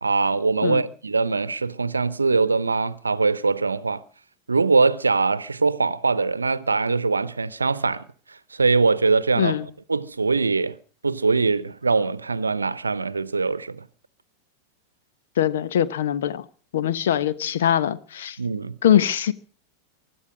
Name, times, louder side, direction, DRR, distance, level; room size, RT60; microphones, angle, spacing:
voice 1, 0.0-4.0 4.5-8.0 8.3-9.6 9.9-10.8 11.0-13.8 18.4-18.8, right 4 dB, 80° right, 0.8 m, -22 dB
voice 2, 9.3-9.7 15.4-16.4 16.7-18.4 18.8-19.3, left 10 dB, 60° left, 1.2 m, -22 dB
24.5 x 11.5 x 5.1 m
figure-of-eight pair, 90°, 0 cm